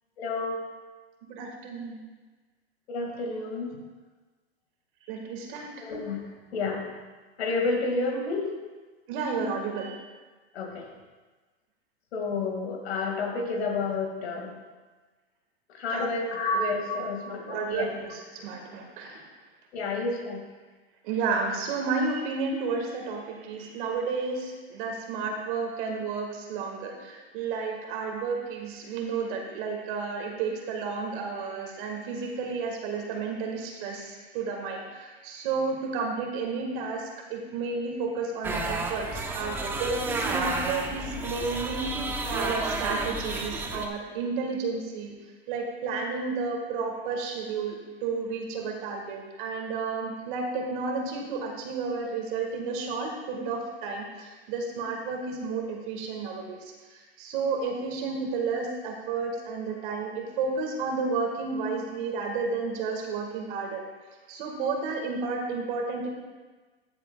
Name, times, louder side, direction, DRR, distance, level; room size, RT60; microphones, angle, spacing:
voice 1, 0.2-0.6 2.9-3.8 5.8-6.2 6.5-6.8 7.4-8.5 10.5-10.8 12.1-14.5 15.7-17.9 19.7-20.4, left 3 dB, 80° left, 1 dB, 2.2 m, -30 dB
voice 2, 1.3-2.0 5.1-5.7 9.1-9.9 15.9-16.1 17.5-19.2 21.0-42.0 42.3-45.2 45.5-63.8 64.3-66.1, right 4 dB, 55° right, 2 dB, 1.8 m, -32 dB
sound 1, 38.4-43.9, right 3 dB, 5° right, 0.3 m, -31 dB
13.5 x 7.4 x 2.4 m, 1.3 s
hypercardioid pair, 130°, 32 cm